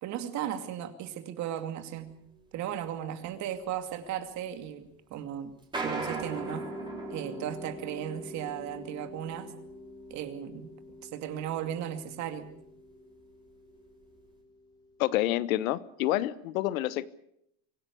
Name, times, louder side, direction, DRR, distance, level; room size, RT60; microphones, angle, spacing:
voice 1, 0.0-2.1 2.5-5.5 5.8-6.7 7.1-9.5 10.1-10.7 11.0-12.5, right 10 dB, 45° right, 8 dB, 2.5 m, -36 dB
sound 1, 2.3-2.4 2.7-2.8 3.5-3.6 4.3-4.6 5.5-11.9 12.4-12.6 12.9-13.0 13.5-13.6 14.2-14.3, right 3 dB, 10° right, 4.3 m, -41 dB
Mallet percussion, 6.3-15.1, left 2 dB, 10° left, 3.6 m, -47 dB
voice 2, 15.0-17.1, left 15 dB, 85° left, 17 dB, 1.2 m, -28 dB
25.0 x 16.5 x 8.5 m, 0.77 s
supercardioid pair, 140°, 40 cm